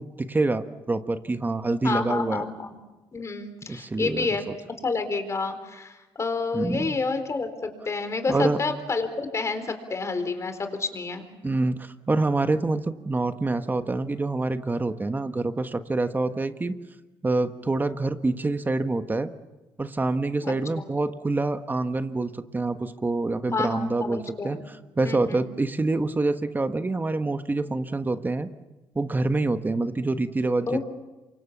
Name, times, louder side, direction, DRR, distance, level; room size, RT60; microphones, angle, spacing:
voice 1, 0.0-2.4 3.7-4.6 6.5-7.0 8.3-8.6 11.4-16.8 17.2-19.3 19.8-28.5 28.9-30.8, right 2 dB, 20° right, 9 dB, 1.3 m, -26 dB
voice 2, 1.8-2.8 3.1-4.5 4.8-11.3 20.4-20.8 23.5-24.6 25.0-25.5 30.7-30.8, left 4 dB, 35° left, 8 dB, 4.1 m, -29 dB
28.0 x 24.5 x 7.3 m, 1.1 s
cardioid pair, 85°, 9 cm